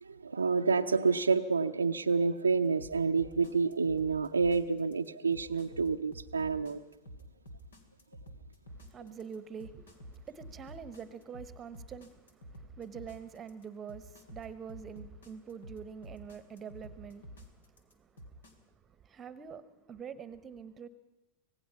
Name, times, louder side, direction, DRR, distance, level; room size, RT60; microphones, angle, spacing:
voice 1, 0.0-6.8, right 4 dB, 75° right, 0.6 m, -29 dB
sound 1, 2.8-18.5, equal, 70° left, 2.6 m, -49 dB
voice 2, 8.7-20.9, right 7 dB, 25° right, 1.0 m, -46 dB
25.0 x 19.0 x 5.7 m
figure-of-eight pair, 90°, 0 cm